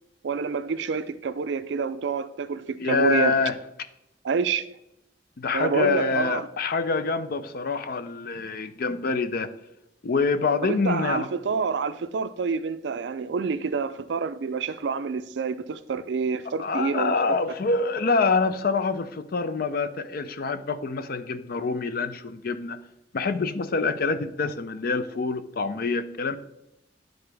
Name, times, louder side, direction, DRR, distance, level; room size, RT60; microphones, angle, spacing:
voice 1, 0.2-3.4 4.2-4.7 5.5-6.5 10.6-17.2, right 5 dB, 70° right, 0.4 m, -28 dB
voice 2, 2.8-3.5 5.4-9.5 10.0-11.3 16.6-22.8 23.1-26.4, left 4 dB, 55° left, 0.5 m, -26 dB
11.5 x 3.8 x 3.4 m
head